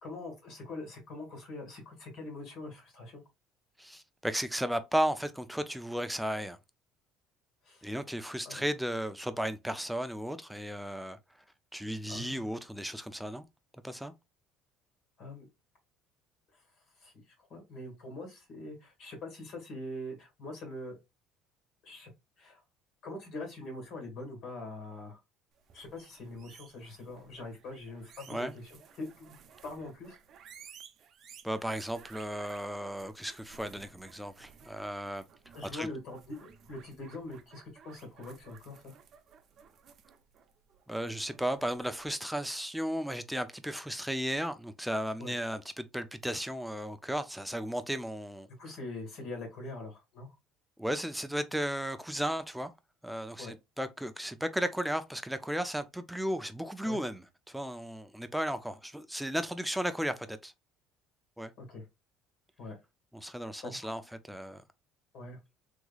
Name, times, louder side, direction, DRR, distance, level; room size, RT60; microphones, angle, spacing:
voice 1, 0.0-3.2 7.6-7.9 8.4-8.7 12.1-12.5 15.2-15.5 17.0-17.1 17.4-21.0 21.8-22.1 22.4-22.6 23.0-25.2 25.7-28.7 29.0-30.2 35.5-38.9 45.2-45.3 48.6-50.3 53.4-53.5 56.8-57.0 61.6-61.8 62.6-62.8 63.6-63.9 65.1-65.4, left 2 dB, 55° left, 1.7 m, -43 dB
voice 2, 3.8-6.6 7.8-11.2 11.7-13.4 13.8-14.1 28.3-28.5 31.4-35.2 35.7-35.9 40.9-48.5 50.8-52.7 53.0-60.5 61.4-61.5 63.1-64.6, equal, ahead, 0.4 m, -35 dB
sound 1, 25.6-42.1, right 7 dB, 45° right, 0.6 m, -57 dB
3.6 x 3.1 x 2.3 m
cardioid pair, 140°, 0 cm